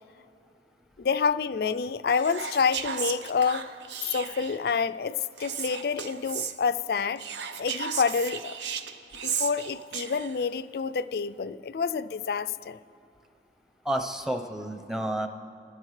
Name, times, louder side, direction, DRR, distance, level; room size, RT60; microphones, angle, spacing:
voice 1, 1.0-3.7 4.0-7.2 7.6-8.5 9.2-12.8, left 5 dB, 55° left, 13 dB, 0.4 m, -28 dB
Whispering, 2.1-4.7 5.4-6.5 7.2-10.4, right 7 dB, 75° right, 0.7 m, -35 dB
voice 2, 13.8-15.3, right 1 dB, 5° right, 6 dB, 0.7 m, -30 dB
28.5 x 13.0 x 3.3 m, 2.7 s
head